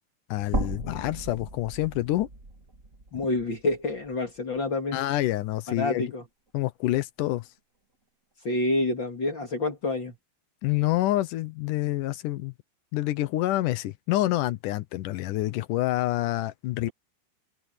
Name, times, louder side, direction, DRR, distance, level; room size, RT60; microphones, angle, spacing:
voice 1, 0.3-2.3 4.9-6.1 6.5-7.5 10.6-12.5 12.9-16.9, left 16 dB, 80° left, 1.8 m, -27 dB
sound 1, 0.5-4.7 5.1-5.2 6.6-6.7, right 2 dB, 25° right, 2.5 m, -36 dB
voice 2, 3.1-5.0 5.7-6.2 8.4-10.1, left 2 dB, 35° left, 2.2 m, -28 dB
omnidirectional pair, 4.9 m